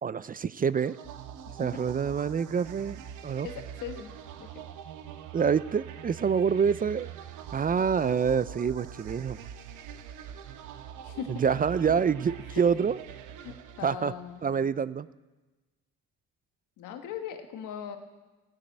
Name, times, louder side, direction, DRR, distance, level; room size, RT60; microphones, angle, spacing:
voice 1, 0.0-1.0 1.6-3.5 5.3-7.1 7.5-9.4 11.3-13.0 13.8-14.1 14.4-15.1, right 6 dB, 30° right, 17 dB, 0.4 m, -27 dB
sound 1, 0.8-14.4, right 8 dB, 85° right, 0.9 m, -44 dB
voice 2, 3.4-4.1 4.4-4.5 11.0-11.5 12.5-12.6 13.4-14.7 16.8-18.0, left 8 dB, 90° left, 6 dB, 1.4 m, -40 dB
16.5 x 6.5 x 8.9 m, 1.2 s
cardioid pair, 90°, 30 cm